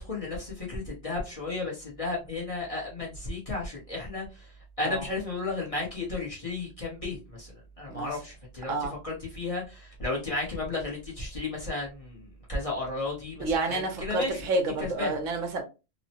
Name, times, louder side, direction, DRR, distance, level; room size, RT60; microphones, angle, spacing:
voice 1, 0.0-8.8 9.0-14.4 14.8-15.1, left 3 dB, 30° left, 0.8 m, -34 dB
voice 2, 13.4-15.6, right 2 dB, 80° right, 1.1 m, -29 dB
3.0 x 2.0 x 2.7 m
omnidirectional pair, 1.3 m